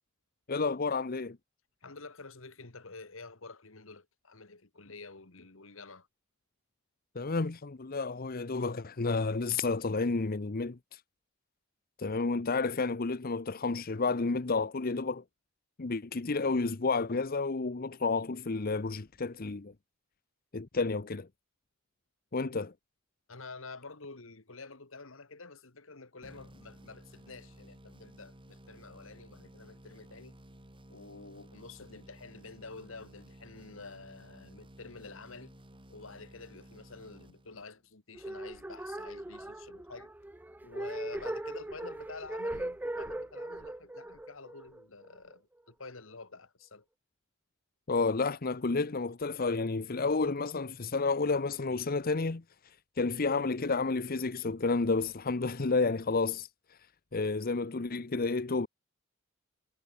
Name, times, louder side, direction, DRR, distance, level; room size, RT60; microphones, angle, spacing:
voice 1, 0.5-1.4 7.1-11.0 12.0-15.2 15.8-19.7 20.5-21.3 22.3-22.7 47.9-56.8 57.1-58.7, left 3 dB, 45° left, 0.8 m, -31 dB
voice 2, 1.8-6.1 23.3-30.4 30.9-35.6 35.9-40.1 40.6-46.9, left 3 dB, 70° left, 2.0 m, -49 dB
sound 1, 26.2-37.9, equal, 25° right, 7.1 m, -55 dB
sound 2, 38.1-45.3, right 1 dB, 10° right, 0.4 m, -39 dB
head